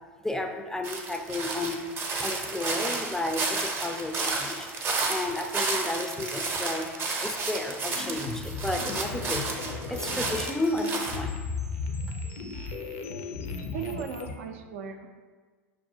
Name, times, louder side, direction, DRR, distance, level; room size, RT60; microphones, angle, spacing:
voice 1, 0.2-1.8 2.2-6.9 7.2-9.5 9.9-11.4, left 2 dB, 5° left, 4 dB, 0.3 m, -32 dB
sound 1, 0.8-11.2, right 3 dB, 35° right, 0.6 m, -32 dB
sound 2, 7.9-14.3, left 4 dB, 70° left, 0.5 m, -35 dB
voice 2, 13.7-15.1, right 8 dB, 70° right, 5 dB, 0.4 m, -37 dB
5.7 x 2.3 x 2.7 m, 1.5 s
hypercardioid pair, 80°, 7 cm